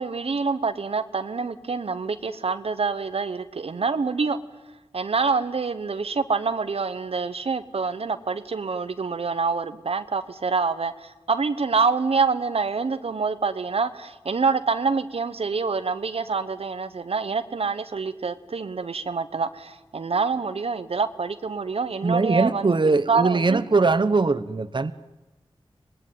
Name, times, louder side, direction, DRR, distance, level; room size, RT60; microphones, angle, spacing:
voice 1, 0.0-4.4 4.9-22.7 23.1-23.6, right 4 dB, 85° right, 1.0 m, -26 dB
voice 2, 22.0-24.9, right 3 dB, 55° right, 1.0 m, -21 dB
25.0 x 19.5 x 9.3 m
wide cardioid pair, 50°, 10 cm